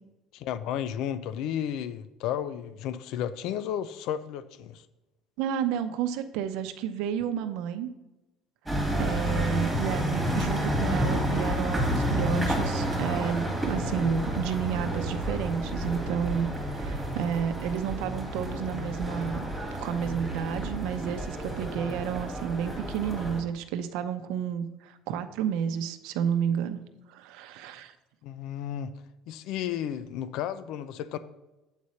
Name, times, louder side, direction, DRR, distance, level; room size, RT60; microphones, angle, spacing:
voice 1, 0.3-4.8 28.2-28.9 29.3-31.2, left 10 dB, 70° left, 13 dB, 0.5 m, -33 dB
voice 2, 5.4-7.9 9.0-19.5 19.8-26.8 27.1-27.9, right 8 dB, 80° right, 8 dB, 0.7 m, -31 dB
sound 1, 8.7-23.4, equal, 5° right, 2.5 m, -30 dB
8.3 x 4.2 x 6.3 m, 1.0 s
cardioid pair, 130°, 0 cm